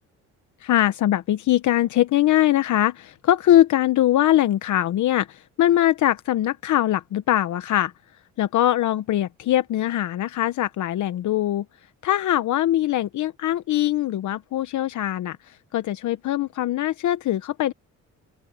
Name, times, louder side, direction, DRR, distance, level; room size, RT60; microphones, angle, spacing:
voice 1, 0.6-7.9 8.4-11.6 12.0-17.7, left 13 dB, 75° left, 1.0 m, -22 dB
open air
cardioid pair, 90°, 30 cm